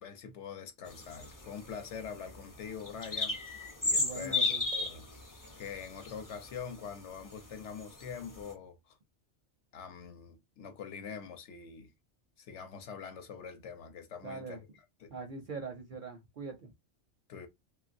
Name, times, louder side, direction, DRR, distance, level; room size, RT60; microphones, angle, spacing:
voice 1, 0.0-3.4 3.8-5.1 5.6-9.0 9.7-11.9 12.4-14.6 15.0-15.1 17.3-17.5, left 6 dB, 70° left, 1.0 m, -44 dB
sound 1, 0.9-6.9 7.3-8.5, left 3 dB, 25° left, 0.4 m, -35 dB
voice 2, 4.0-4.6 14.2-14.6 15.1-16.7, right 4 dB, 55° right, 0.6 m, -42 dB
3.1 x 2.5 x 2.5 m
omnidirectional pair, 1.3 m